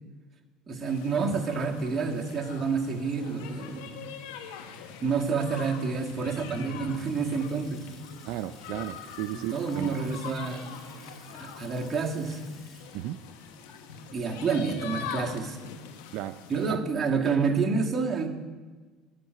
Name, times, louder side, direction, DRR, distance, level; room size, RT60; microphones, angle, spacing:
voice 1, 0.7-4.2 5.0-7.9 9.3-12.4 14.1-15.6 16.5-18.3, right 5 dB, 25° right, 0 dB, 1.8 m, -29 dB
sound 1, 0.8-16.7, left 7 dB, 90° left, 1.2 m, -43 dB
Water tap faucet / Sink (filling or washing) / Splash splatter, 6.7-15.3, left 2 dB, 35° left, 5.1 m, -57 dB
voice 2, 8.3-10.0 12.9-13.2 16.1-16.4 16.7-16.8, right 13 dB, 70° right, 11 dB, 0.4 m, -34 dB
12.5 x 6.5 x 9.0 m, 1.4 s
supercardioid pair, 120°, 0 cm